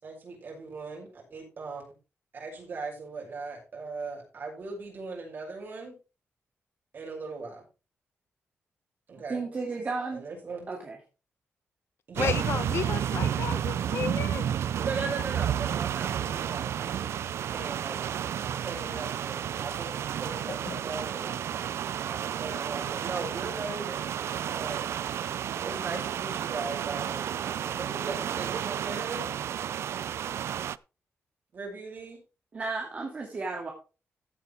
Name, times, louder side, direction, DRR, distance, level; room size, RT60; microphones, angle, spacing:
voice 1, 0.0-1.8 2.3-6.0 6.9-7.6 9.1-9.4 10.1-10.7 12.1-12.3 14.8-17.2 17.5-18.0 18.6-21.4 22.0-24.1 24.4-25.0 25.6-27.4 27.7-29.3 31.5-32.2, right 4 dB, 50° right, 6.5 m, -38 dB
voice 2, 9.3-10.2 10.7-10.8 32.5-33.7, right 3 dB, 35° right, 2.3 m, -33 dB
voice 3, 12.2-14.5 18.8-19.0 20.7-20.8, left 7 dB, 65° left, 0.9 m, -33 dB
sound 1, 12.2-30.8, right 9 dB, 80° right, 0.4 m, -31 dB
15.0 x 8.8 x 3.4 m
wide cardioid pair, 170°, 4 cm